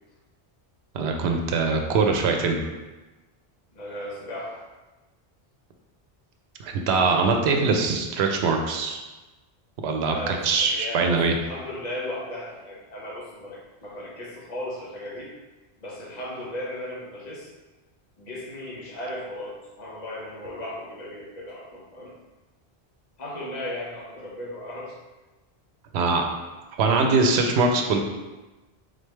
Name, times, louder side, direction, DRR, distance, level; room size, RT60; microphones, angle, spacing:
voice 1, 0.9-2.6 6.6-9.0 9.8-11.3 25.9-26.3 26.8-28.0, right 4 dB, 85° right, 3 dB, 0.8 m, -22 dB
voice 2, 3.7-4.6 10.1-15.3 15.8-17.5 18.2-22.1 23.2-24.9 26.0-26.3, left 1 dB, 45° left, -5 dB, 1.1 m, -36 dB
3.9 x 3.2 x 3.2 m, 1.1 s
omnidirectional pair, 1.1 m